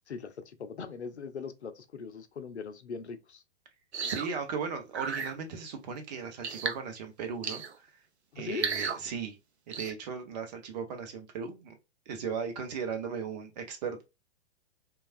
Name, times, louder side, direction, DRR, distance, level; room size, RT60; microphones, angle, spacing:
voice 1, 0.1-3.4 8.3-8.7, left 5 dB, 80° left, 0.5 m, -40 dB
sound 1, 3.9-4.3 4.9-5.3 6.4-6.8 7.4-7.8 8.5-9.0 9.7-9.9, right 5 dB, 75° right, 0.6 m, -33 dB
voice 2, 4.0-7.9 8.4-9.4 9.7-11.8 12.1-14.0, right 6 dB, 40° right, 0.8 m, -37 dB
3.2 x 2.4 x 2.4 m
figure-of-eight pair, 110°, 33 cm